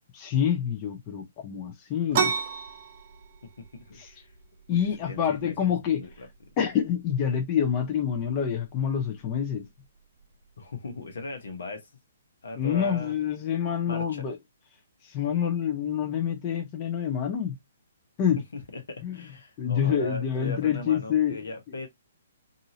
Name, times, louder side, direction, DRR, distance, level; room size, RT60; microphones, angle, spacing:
voice 1, 0.1-2.3 4.0-4.1 4.7-6.0 6.6-9.7 12.6-14.4 15.0-17.6 18.2-18.4 19.0-19.2 19.6-21.5, left 8 dB, 30° left, 0.7 m, -27 dB
sound 1, 2.1-11.5, right 7 dB, 45° right, 0.6 m, -36 dB
voice 2, 3.4-4.3 4.7-6.3 10.6-11.9 12.4-13.1 13.9-14.3 18.5-21.9, left 3 dB, 70° left, 1.0 m, -39 dB
2.7 x 2.6 x 2.8 m
hypercardioid pair, 135°, 0 cm